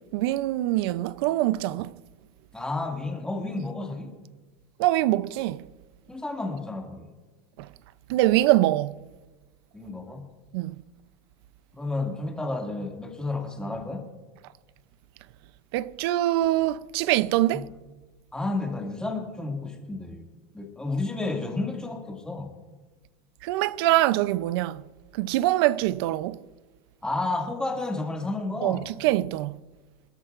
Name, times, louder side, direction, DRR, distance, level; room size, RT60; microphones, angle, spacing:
voice 1, 0.0-1.9 4.8-5.6 8.1-9.0 10.5-10.8 15.7-17.7 23.4-24.8 25.1-26.4 28.6-29.6, right 16 dB, 70° right, 0.5 m, -24 dB
voice 2, 2.5-4.1 6.1-7.1 9.7-10.3 11.7-14.1 17.5-17.7 18.3-20.2 20.5-22.5 27.0-28.8, left 2 dB, 5° left, 2.1 m, -31 dB
27.5 x 12.5 x 2.5 m
supercardioid pair, 145°, 13 cm